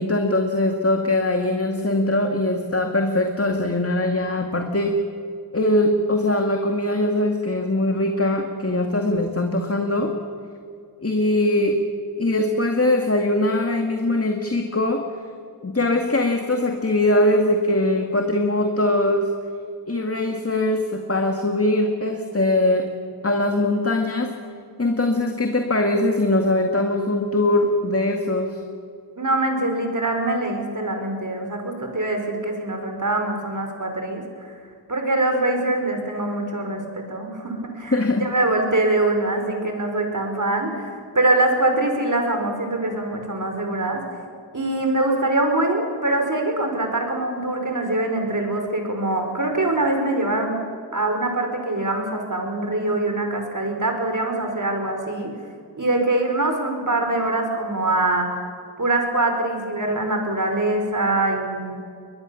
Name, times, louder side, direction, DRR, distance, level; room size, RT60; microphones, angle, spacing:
voice 1, 0.0-5.0 5.5-10.1 11.0-11.8 12.2-15.0 15.6-19.3 19.9-22.9 23.2-24.3 24.8-28.6 37.9-38.2, left 1 dB, 35° left, 3 dB, 2.1 m, -21 dB
voice 2, 29.2-34.5 34.9-44.0 44.5-50.6 50.9-55.3 55.8-58.3 58.8-61.8, right 2 dB, 50° right, 4 dB, 5.1 m, -23 dB
22.5 x 21.0 x 7.1 m, 2.3 s
wide cardioid pair, 60°, 40 cm